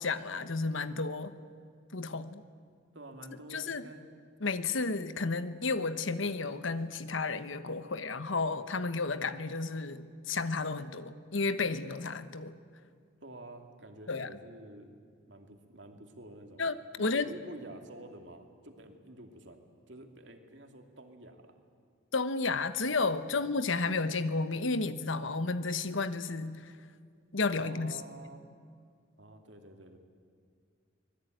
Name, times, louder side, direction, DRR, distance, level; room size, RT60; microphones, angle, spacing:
voice 1, 0.0-1.3 1.9-2.4 3.5-3.8 4.4-12.5 14.1-14.3 16.6-17.3 22.1-26.7 27.3-27.9, left 3 dB, 80° left, 12 dB, 1.2 m, -32 dB
voice 2, 2.9-4.1 13.2-15.0 15.3-16.7 17.0-19.6 19.9-21.6 23.3-23.5 27.5-28.5 29.2-30.0, right 1 dB, 65° right, 5 dB, 2.6 m, -49 dB
24.5 x 20.0 x 9.3 m, 2.2 s
head